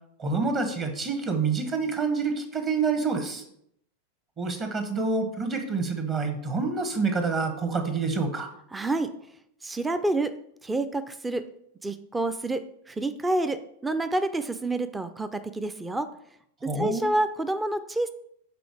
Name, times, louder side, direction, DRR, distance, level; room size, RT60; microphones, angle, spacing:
voice 1, 0.2-3.4 4.4-8.5 16.7-17.1, right 4 dB, 30° right, 6 dB, 1.1 m, -27 dB
voice 2, 8.7-9.1 9.6-10.3 10.6-11.4 11.8-16.1 16.8-18.1, right 2 dB, 10° right, 10 dB, 0.4 m, -28 dB
6.8 x 3.8 x 4.7 m, 0.71 s
figure-of-eight pair, 90°, 0 cm